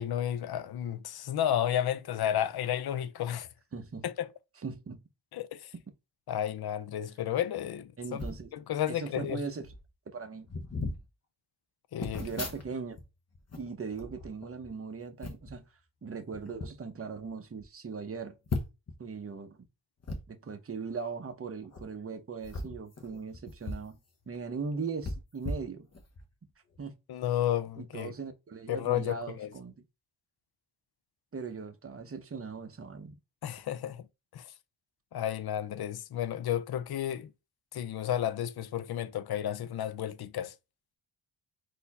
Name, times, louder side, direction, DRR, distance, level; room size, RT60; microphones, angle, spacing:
voice 1, 0.0-3.5 4.0-4.3 5.3-5.7 6.3-8.2 8.5-9.4 11.9-12.3 27.1-28.1 28.7-29.5 33.4-34.0 34.3-34.5 35.1-37.3 37.7-40.5, left 10 dB, 55° left, 0.5 m, -32 dB
voice 2, 3.7-4.1 4.6-5.0 5.7-5.8 8.0-8.5 8.9-9.7 10.1-10.5 12.2-13.0 13.6-15.6 16.0-18.4 19.0-19.6 20.3-24.0 24.3-25.9 26.8-26.9 27.8-29.8 31.3-33.1, right 5 dB, 30° right, 0.7 m, -39 dB
sound 1, 8.1-8.4 9.3-9.4 9.6-9.9 10.4-11.0 12.0-13.0 13.3-14.7 15.2-15.6 16.3-16.7 17.2-17.3 17.6-17.7 18.5-18.9 20.0-20.2 21.6-21.8 22.4-23.9 24.2-24.3 25.0-26.2 26.7-26.9, left 3 dB, 30° left, 1.0 m, -38 dB
4.2 x 2.7 x 4.1 m
wide cardioid pair, 115°, 48 cm